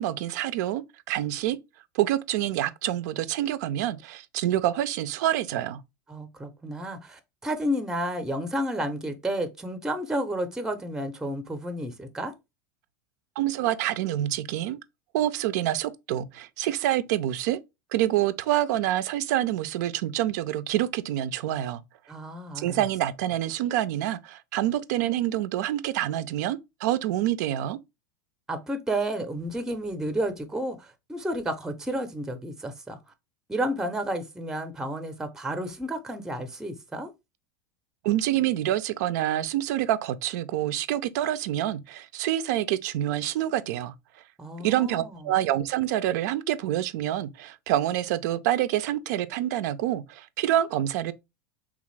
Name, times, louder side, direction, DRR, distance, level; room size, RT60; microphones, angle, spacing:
voice 1, 0.0-1.6 1.9-5.8 13.4-14.8 15.1-17.6 17.9-21.8 22.6-27.8 38.0-43.9 44.6-51.1, right 13 dB, 70° right, 0.4 m, -27 dB
voice 2, 6.1-12.3 22.1-22.8 28.5-33.0 33.5-37.1 44.4-45.2, right 1 dB, 5° right, 0.5 m, -31 dB
3.4 x 2.5 x 3.1 m
hypercardioid pair, 105°, 10 cm